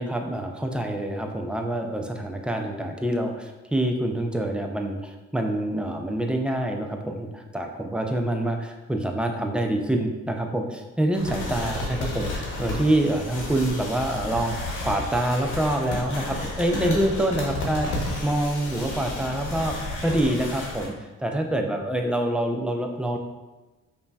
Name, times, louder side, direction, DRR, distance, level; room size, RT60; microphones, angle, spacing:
voice 1, 0.0-17.9 18.2-19.8 20.0-20.9 21.2-23.2, right 1 dB, 5° right, 2 dB, 0.4 m, -26 dB
sound 1, 11.1-20.9, left 2 dB, 90° left, 1.0 m, -32 dB
5.1 x 2.7 x 2.3 m, 1.1 s
cardioid pair, 90°, 30 cm